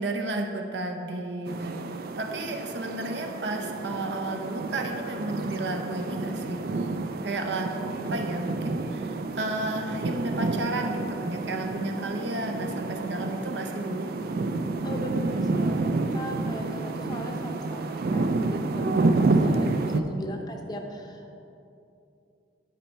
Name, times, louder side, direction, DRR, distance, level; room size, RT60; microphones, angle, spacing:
voice 1, 0.0-1.8 2.2-6.9 7.2-14.1, right 2 dB, 75° right, 3 dB, 0.7 m, -32 dB
sound 1, 1.5-20.0, right 3 dB, 55° right, 0.3 m, -29 dB
voice 2, 14.8-21.4, equal, 20° left, 3 dB, 0.6 m, -39 dB
10.0 x 4.2 x 4.5 m, 2.7 s
head